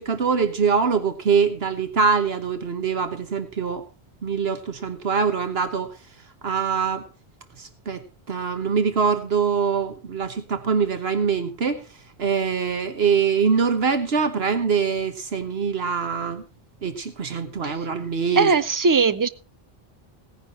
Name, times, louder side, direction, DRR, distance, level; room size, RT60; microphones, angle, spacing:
voice 1, 0.0-3.8 4.2-5.9 6.4-7.0 7.6-8.0 8.3-11.8 12.2-16.4 16.8-18.5, right 6 dB, 75° right, 9 dB, 1.4 m, -23 dB
voice 2, 18.4-19.3, right 5 dB, 25° right, 13 dB, 0.5 m, -19 dB
17.0 x 9.9 x 4.2 m, 0.34 s
omnidirectional pair, 1.0 m